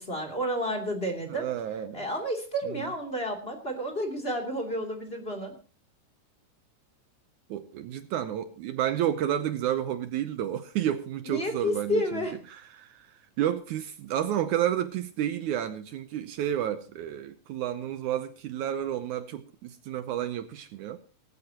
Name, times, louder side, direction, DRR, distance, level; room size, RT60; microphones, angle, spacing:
voice 1, 0.0-1.5 1.9-5.5 11.3-12.4, equal, 20° left, 2.8 m, -31 dB
voice 2, 1.3-2.0 7.5-12.2 12.5-13.1 13.4-21.0, right 11 dB, 75° right, 2.1 m, -31 dB
19.0 x 15.5 x 2.9 m
omnidirectional pair, 3.8 m